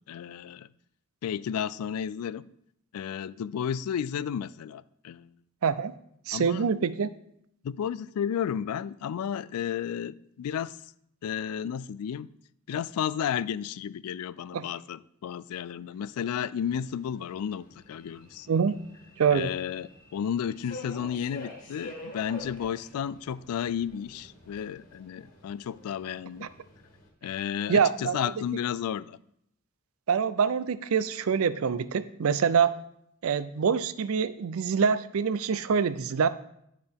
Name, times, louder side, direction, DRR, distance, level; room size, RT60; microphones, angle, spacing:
voice 1, 0.1-0.7 1.2-2.5 2.9-5.3 6.3-6.7 7.6-10.8 11.2-12.3 12.7-18.5 19.3-26.5 27.2-29.2, left 8 dB, 90° left, 18 dB, 0.3 m, -32 dB
voice 2, 5.6-5.9 6.3-7.1 14.5-14.7 18.5-18.8 19.2-19.5 26.4-26.5 27.7-28.2 30.1-32.7 33.2-36.3, right 6 dB, 70° right, 15 dB, 0.4 m, -25 dB
Subway metro underground, 16.6-27.1, left 1 dB, 40° left, 1.8 m, -48 dB
9.7 x 6.4 x 3.5 m, 0.74 s
head